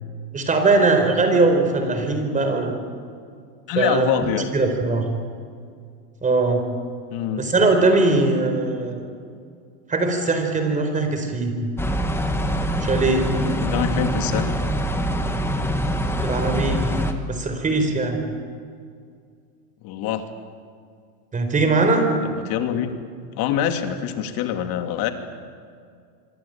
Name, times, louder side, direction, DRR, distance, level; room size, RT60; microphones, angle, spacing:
voice 1, 0.3-2.7 3.8-5.1 6.2-6.6 7.4-9.1 9.9-11.6 12.8-13.3 16.2-16.9 17.3-18.2 21.3-22.1, right 3 dB, 15° right, 6 dB, 4.3 m, -20 dB
voice 2, 3.7-4.5 7.1-7.4 13.6-14.5 19.8-20.2 22.2-23.0 23.4-25.1, left 10 dB, 50° left, 6 dB, 2.9 m, -25 dB
sound 1, 11.8-17.1, equal, 5° left, 1.7 m, -24 dB
26.0 x 24.5 x 9.0 m, 2.2 s
supercardioid pair, 140°, 47 cm